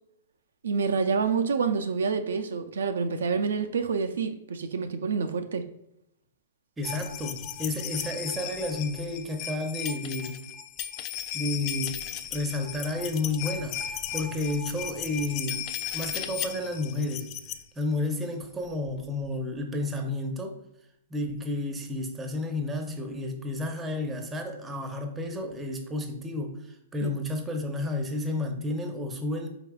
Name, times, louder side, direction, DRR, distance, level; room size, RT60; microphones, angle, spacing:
voice 1, 0.6-5.7 27.0-27.1, right 5 dB, 80° right, 0.3 m, -27 dB
sound 1, 6.8-17.6 18.7-18.8 18.9-19.0, left 10 dB, 40° left, 0.3 m, -36 dB
voice 2, 6.8-10.4 11.3-17.3 17.8-20.6 21.1-29.5, left 2 dB, 15° right, 0.6 m, -31 dB
4.3 x 3.4 x 2.3 m
hypercardioid pair, 125°, 0 cm